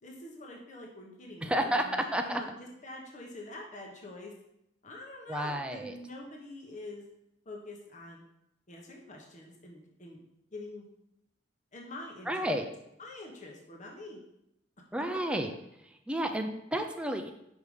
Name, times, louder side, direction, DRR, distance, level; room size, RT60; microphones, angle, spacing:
voice 1, 0.0-4.3 4.8-7.0 7.4-8.2 8.7-10.2 10.5-10.8 11.7-12.5 13.0-14.2 15.3-15.4, left 2 dB, 40° left, 0 dB, 1.0 m, -45 dB
voice 2, 1.4-1.8 2.1-2.4 5.3-6.0 12.3-12.7 14.9-15.5 16.1-17.3, right 1 dB, 5° right, 4 dB, 0.4 m, -31 dB
5.4 x 4.7 x 4.9 m, 0.82 s
head